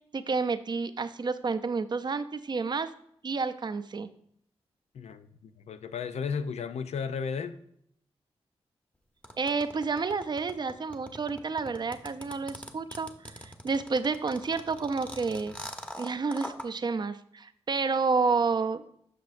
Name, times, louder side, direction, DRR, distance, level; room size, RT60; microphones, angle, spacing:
voice 1, 0.1-2.9 3.2-4.1 9.4-15.5 16.0-18.8, right 4 dB, 40° right, 0.5 m, -30 dB
voice 2, 4.9-7.6, left 6 dB, 80° left, 0.5 m, -34 dB
sound 1, 9.2-16.7, equal, 10° left, 0.9 m, -42 dB
7.6 x 5.9 x 2.5 m
cardioid pair, 50°, 11 cm